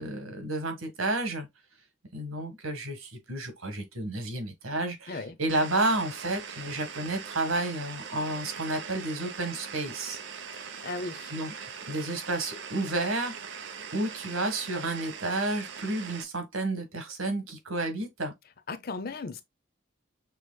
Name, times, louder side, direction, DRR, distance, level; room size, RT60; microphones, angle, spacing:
voice 1, 0.0-1.5 2.1-10.2 11.3-13.4 13.9-18.3, right 2 dB, 90° right, 1.4 m, -31 dB
sound 1, 5.5-16.2, right 6 dB, 60° right, 0.6 m, -41 dB
voice 2, 10.5-11.3 18.7-19.4, left 3 dB, 45° left, 0.5 m, -36 dB
6.3 x 3.0 x 2.2 m
head